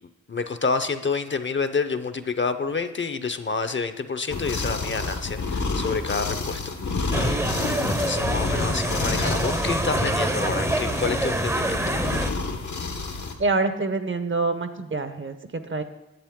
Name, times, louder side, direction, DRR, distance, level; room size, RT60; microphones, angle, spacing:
voice 1, 0.3-6.6 7.0-7.4 7.6-11.8, left 4 dB, 40° left, 10 dB, 0.6 m, -28 dB
sound 1, 4.3-13.3, left 3 dB, 80° left, 1.1 m, -29 dB
sound 2, 7.1-12.3, right 1 dB, 10° right, 0.6 m, -26 dB
voice 2, 13.4-15.8, right 3 dB, 45° right, 10 dB, 0.7 m, -26 dB
10.5 x 8.2 x 3.6 m, 1.0 s
cardioid pair, 65°, 29 cm